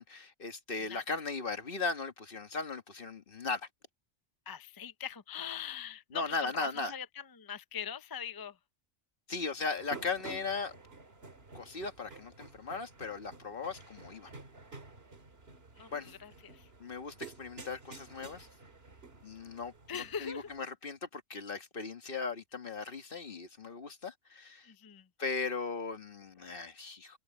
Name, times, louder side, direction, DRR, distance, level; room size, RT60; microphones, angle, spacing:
voice 1, 0.0-3.7 6.1-6.9 9.3-10.7 11.5-14.3 15.9-16.1 16.8-18.5 19.2-24.7 25.2-27.2, left 4 dB, 50° left, 1.7 m, -38 dB
voice 2, 4.5-8.6 15.8-16.7 19.9-20.5 24.6-25.1, left 8 dB, 30° left, 0.4 m, -42 dB
sound 1, 9.8-20.6, right 4 dB, 60° right, 2.4 m, -51 dB
omnidirectional pair, 1.2 m